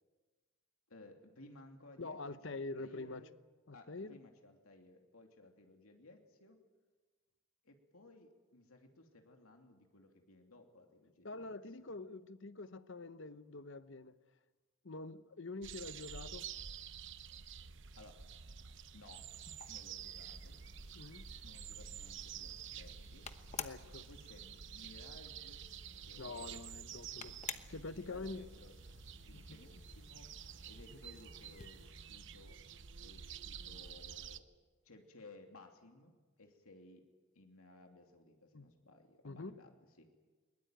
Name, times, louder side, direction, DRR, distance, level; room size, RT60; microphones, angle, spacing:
voice 1, 0.9-2.2 2.5-3.3 3.7-6.6 7.6-11.5 11.8-11.9 18.0-18.2 18.9-19.3 19.7-20.6 21.4-23.3 24.1-25.6 26.1-26.5 27.5-27.7 27.9-28.8 29.2-30.3 30.6-32.6 33.0-34.4 34.8-37.0 37.3-39.7 40.0-40.1, left 2 dB, 85° left, 2.9 m, -59 dB
voice 2, 2.0-3.2 3.7-4.2 11.2-14.1 14.8-16.5 20.9-21.3 23.6-24.1 26.2-28.5 29.3-29.6 38.5-38.7 39.2-39.5, left 3 dB, 60° left, 0.9 m, -46 dB
sound 1, 15.6-34.4, right 7 dB, 55° right, 0.9 m, -50 dB
sound 2, 19.1-31.9, left 7 dB, 30° left, 1.0 m, -53 dB
21.5 x 20.5 x 9.1 m
head